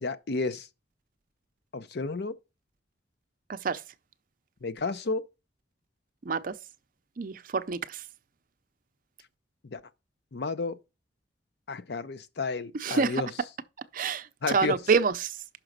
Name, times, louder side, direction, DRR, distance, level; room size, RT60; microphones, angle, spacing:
voice 1, 0.0-0.7 1.7-2.3 4.6-5.2 9.7-9.8 10.3-10.7 11.7-13.3 14.4-14.8, left 3 dB, 65° left, 0.6 m, -31 dB
voice 2, 3.5-3.8 6.2-6.6 7.2-8.0 12.7-13.2 13.9-15.4, right 5 dB, 50° right, 0.5 m, -27 dB
6.0 x 5.0 x 6.5 m
head